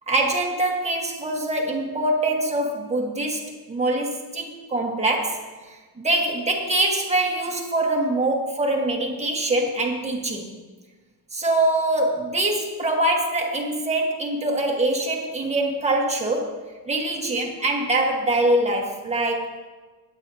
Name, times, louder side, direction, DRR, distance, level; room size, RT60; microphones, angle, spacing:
voice 1, 0.1-10.5 11.3-16.6 16.9-19.6, right 2 dB, 15° right, 0 dB, 1.4 m, -24 dB
18.0 x 8.8 x 2.7 m, 1.3 s
cardioid pair, 170°, 40 cm